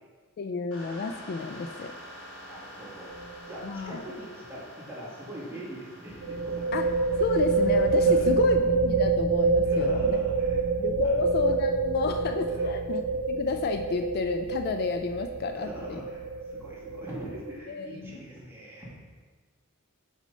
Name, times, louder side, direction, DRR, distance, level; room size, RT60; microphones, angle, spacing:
voice 1, 0.4-1.9 3.6-4.0 6.7-6.9 7.2-10.2 10.8-13.0 13.3-16.0 17.7-18.2, left 4 dB, 50° left, 6 dB, 0.3 m, -30 dB
sound 1, 0.7-8.3, equal, 80° left, 1.4 m, -47 dB
voice 2, 2.4-3.1 3.5-6.8 7.1-7.3 7.9-8.3 9.6-10.6 10.9-11.1 12.5-12.7 15.5-18.9, right 1 dB, 10° right, -7 dB, 2.0 m, -42 dB
sound 2, 3.1-3.4 3.6-3.7 6.2-17.6, right 4 dB, 85° right, 0.5 m, -26 dB
6.1 x 4.0 x 5.4 m, 1.4 s
head